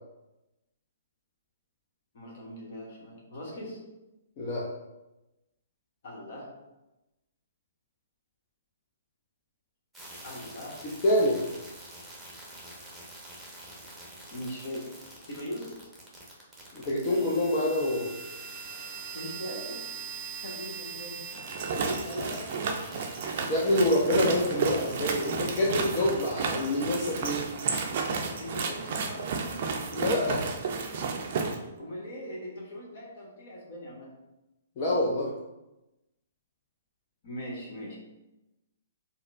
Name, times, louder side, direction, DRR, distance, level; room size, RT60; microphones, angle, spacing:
voice 1, 2.1-3.8 6.0-6.5 10.2-10.8 14.3-14.9 15.3-15.8 19.1-19.8 20.4-21.2 21.8-22.5 28.4-30.0 31.8-34.1 37.2-38.0, equal, 55° left, -3 dB, 1.2 m, -40 dB
voice 2, 4.4-4.7 11.0-11.4 16.7-18.1 23.5-27.5 29.9-30.4 34.8-35.3, left 1 dB, 40° left, -5 dB, 0.6 m, -26 dB
sound 1, 9.9-27.5, right 4 dB, 5° right, 0.8 m, -44 dB
sound 2, 21.3-31.6, right 5 dB, 50° right, 0.4 m, -32 dB
4.2 x 2.1 x 2.4 m, 0.97 s
hypercardioid pair, 125°, 0 cm